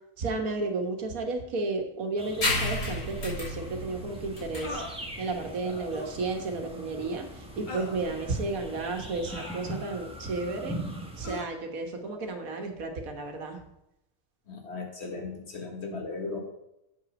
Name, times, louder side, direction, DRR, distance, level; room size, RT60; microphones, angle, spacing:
voice 1, 0.2-4.8 5.2-7.3 7.6-10.8 11.2-13.6, right 3 dB, 80° right, 4 dB, 1.6 m, -32 dB
sound 1, 2.2-11.4, right 1 dB, 5° right, 1.0 m, -42 dB
sound 2, 2.4-9.5, left 2 dB, 90° left, 3.0 m, -34 dB
sound 3, 2.7-2.9 4.6-5.0 5.9-6.2 7.7-8.0 9.2-10.0 11.2-11.5, left 1 dB, 35° left, 1.4 m, -40 dB
voice 2, 5.6-6.0 14.5-16.4, left 3 dB, 50° left, 2 dB, 1.7 m, -37 dB
7.8 x 5.7 x 5.2 m, 0.86 s
omnidirectional pair, 1.5 m